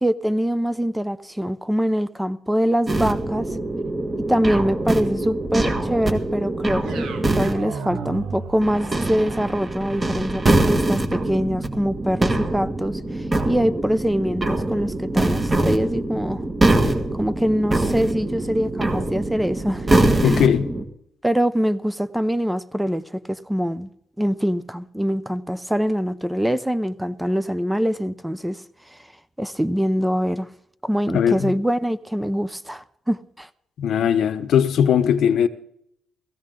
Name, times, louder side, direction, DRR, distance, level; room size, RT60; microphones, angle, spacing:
voice 1, 0.0-3.5 4.3-7.1 7.3-16.4 16.8-19.9 20.3-20.4 21.2-23.9 24.2-28.6 29.4-30.5 30.8-33.5, equal, 5° right, 0.7 m, -24 dB
sound 1, 2.9-7.5 8.6-20.9, right 2 dB, 25° right, 1.9 m, -23 dB
sound 2, 6.8-15.0, right 5 dB, 75° right, 1.7 m, -38 dB
voice 2, 20.2-20.7 31.1-31.5 33.8-35.5, left 8 dB, 70° left, 0.9 m, -19 dB
16.0 x 15.5 x 3.8 m
cardioid pair, 90°, 0 cm